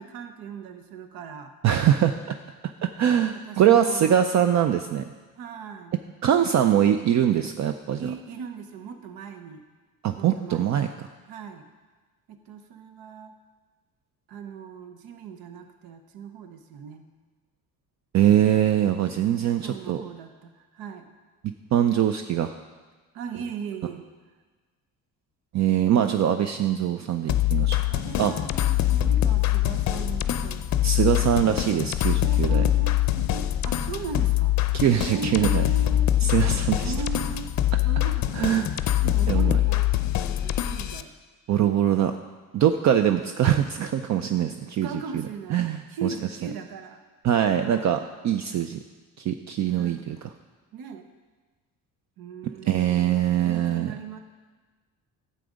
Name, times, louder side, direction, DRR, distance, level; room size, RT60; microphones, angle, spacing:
voice 1, 0.0-1.5 3.3-4.2 5.4-5.9 8.0-9.7 10.1-10.8 11.3-11.7 12.3-13.3 14.3-17.0 19.4-21.1 23.1-24.0 27.9-30.6 32.1-34.6 35.1-36.1 36.8-37.6 37.8-38.6 39.0-39.9 40.2-41.1 41.5-41.9 44.8-45.6 45.9-47.0 47.6-47.9 49.7-50.0 50.7-51.1 52.2-54.2, right 5 dB, 90° right, 7 dB, 0.9 m, -38 dB
voice 2, 1.6-2.4 2.6-5.0 6.2-8.1 10.0-10.9 18.1-20.0 21.7-22.5 25.5-27.8 28.2-28.3 30.8-32.6 34.7-35.6 36.2-36.9 38.3-38.7 39.0-39.6 41.5-42.1 42.5-44.9 45.5-46.1 47.2-48.8 49.2-50.2 52.4-53.9, right 10 dB, 50° right, 8 dB, 0.5 m, -23 dB
sound 1, 27.3-41.0, left 13 dB, 50° left, 0.5 m, -24 dB
11.5 x 7.9 x 5.1 m, 1.3 s
cardioid pair, 140°, 35 cm